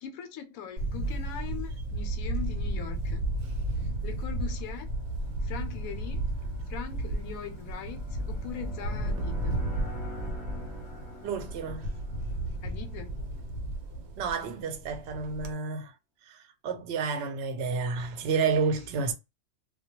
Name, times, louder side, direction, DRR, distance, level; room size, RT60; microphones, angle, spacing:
voice 1, 0.0-3.2 4.0-4.9 5.4-6.3 6.7-9.6 12.6-13.1, left 8 dB, 85° left, 1.0 m, -41 dB
Camera, 0.8-15.5, right 1 dB, 85° right, 1.0 m, -33 dB
sound 1, 2.7-13.5, right 1 dB, 25° left, 0.7 m, -47 dB
voice 2, 11.2-11.9 14.2-15.9 16.3-19.1, right 5 dB, 60° right, 0.7 m, -30 dB
2.2 x 2.2 x 2.8 m
omnidirectional pair, 1.4 m